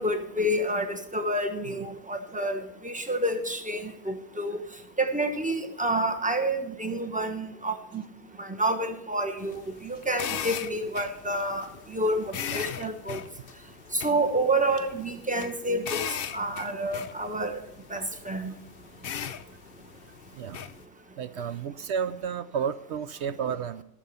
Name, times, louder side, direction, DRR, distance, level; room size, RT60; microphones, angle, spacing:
voice 1, 0.0-4.6 5.0-8.0 8.4-13.2 13.9-16.0 16.3-17.6 17.9-18.5, right 1 dB, 5° right, 5 dB, 0.9 m, -29 dB
sound 1, 9.4-20.8, left 8 dB, 60° left, 0.6 m, -38 dB
voice 2, 20.3-20.7 21.2-23.8, right 7 dB, 70° right, 13 dB, 0.6 m, -32 dB
14.0 x 6.9 x 5.6 m, 0.83 s
omnidirectional pair, 1.7 m